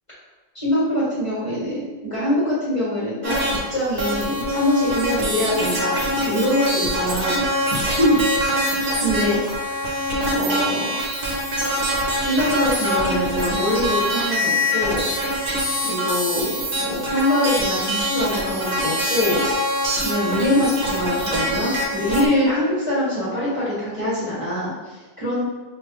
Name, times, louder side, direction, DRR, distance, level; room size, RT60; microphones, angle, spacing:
voice 1, 0.5-3.4 3.7-7.4 7.9-8.2 8.7-10.0 10.3-11.0 12.2-15.1 15.8-19.4 20.0-25.4, left 1 dB, 30° left, -10 dB, 1.5 m, -23 dB
sound 1, 3.2-3.6 4.0-22.3, equal, 60° right, 1.0 m, -24 dB
5.1 x 2.4 x 3.0 m, 1.3 s
omnidirectional pair, 1.0 m